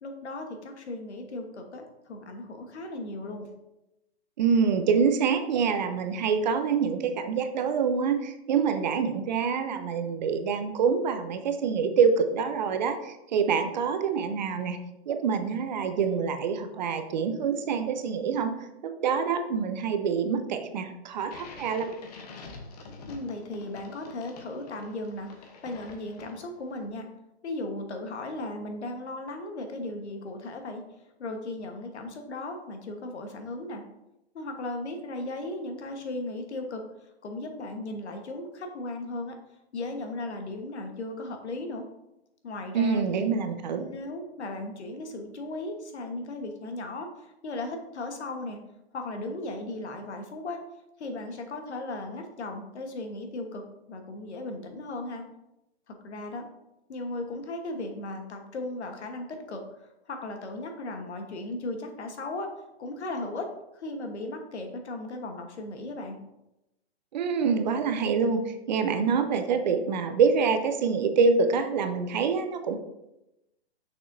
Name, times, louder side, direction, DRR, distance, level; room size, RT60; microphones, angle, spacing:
voice 1, 0.0-3.5 23.1-27.1 27.4-30.8 31.2-33.8 34.3-36.8 37.2-39.4 39.7-41.9 42.4-43.3 43.8-48.6 48.9-50.6 51.0-55.2 55.9-56.5 56.9-62.5 62.8-63.5 63.7-66.2, left 2 dB, 90° left, 4 dB, 1.3 m, -36 dB
voice 2, 4.4-14.8 15.1-18.5 18.8-21.9 42.7-43.8 67.1-72.8, right 6 dB, 45° right, 7 dB, 0.6 m, -26 dB
sound 1, 21.2-26.7, left 3 dB, 35° left, 0.9 m, -46 dB
6.1 x 5.9 x 2.6 m, 0.91 s
hypercardioid pair, 160°, 33 cm